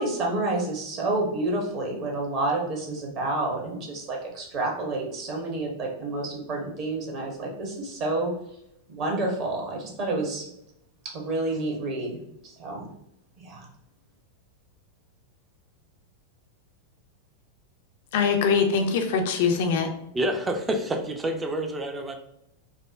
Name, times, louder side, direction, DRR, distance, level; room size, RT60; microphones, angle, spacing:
voice 1, 0.0-8.3 8.9-10.4 11.1-12.1 12.6-12.9 13.4-13.6, right 2 dB, 40° right, 0 dB, 1.1 m, -29 dB
voice 2, 18.1-19.9, left 5 dB, 55° left, 5 dB, 0.5 m, -23 dB
voice 3, 20.1-22.1, right 1 dB, 15° right, 5 dB, 0.5 m, -28 dB
4.8 x 2.1 x 2.5 m, 0.78 s
figure-of-eight pair, 90°, 0 cm